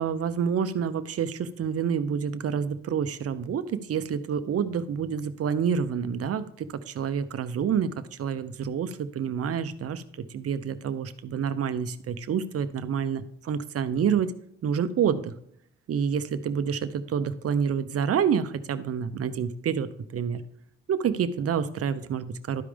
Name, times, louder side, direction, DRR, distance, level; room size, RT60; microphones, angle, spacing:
voice 1, 0.0-14.3 14.6-15.3 15.9-20.4 20.9-22.6, right 7 dB, 50° right, 12 dB, 0.8 m, -28 dB
12.5 x 4.9 x 3.4 m, 0.70 s
cardioid pair, 90°, 30 cm